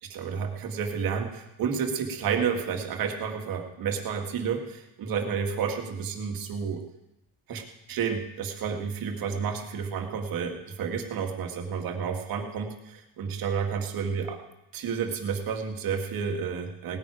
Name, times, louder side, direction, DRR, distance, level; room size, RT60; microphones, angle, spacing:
voice 1, 0.0-6.8 7.5-14.4 14.7-17.0, right 6 dB, 60° right, 3 dB, 2.1 m, -31 dB
18.5 x 9.6 x 5.0 m, 0.90 s
cardioid pair, 120°, 40 cm